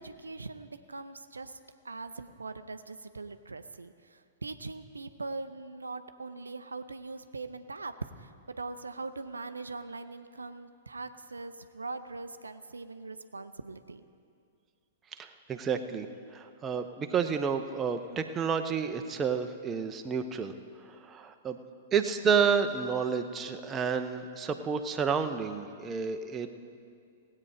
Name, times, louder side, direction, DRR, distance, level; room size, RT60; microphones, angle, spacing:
voice 1, 0.0-1.6 1.8-8.3 8.6-14.0, right 3 dB, 80° right, 10 dB, 0.5 m, -41 dB
voice 2, 15.2-16.1 16.3-20.5 20.8-21.6 21.9-26.6, right 6 dB, 20° right, 7 dB, 0.7 m, -30 dB
18.5 x 8.6 x 5.0 m, 2.3 s
figure-of-eight pair, 105°, 0 cm